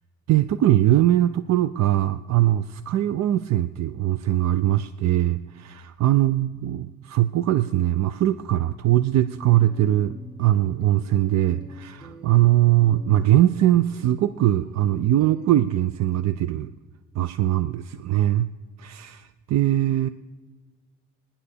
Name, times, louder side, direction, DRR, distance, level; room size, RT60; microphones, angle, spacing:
voice 1, 0.3-16.7 17.1-18.5 18.8-20.1, right 13 dB, 65° right, 12 dB, 0.5 m, -21 dB
sound 1, 9.2-15.6, right 1 dB, 15° right, 1.8 m, -45 dB
18.0 x 10.0 x 6.7 m, 1.4 s
cardioid pair, 90°, 30 cm